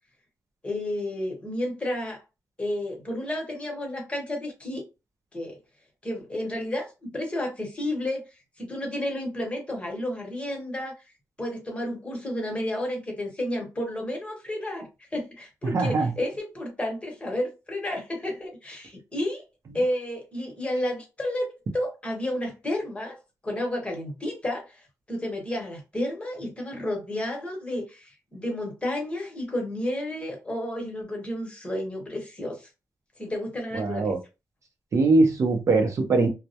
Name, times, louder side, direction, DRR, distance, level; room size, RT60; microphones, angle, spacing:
voice 1, 0.6-2.2 2.6-4.8 5.3-5.6 6.0-8.2 8.6-10.9 11.4-19.4 19.7-23.2 23.4-32.6 33.2-34.1, left 1 dB, 20° left, 1.0 m, -31 dB
voice 2, 15.6-16.1 33.7-34.2 34.9-36.3, right 3 dB, 50° right, 0.6 m, -22 dB
2.2 x 2.0 x 2.8 m
cardioid pair, 110°, 7 cm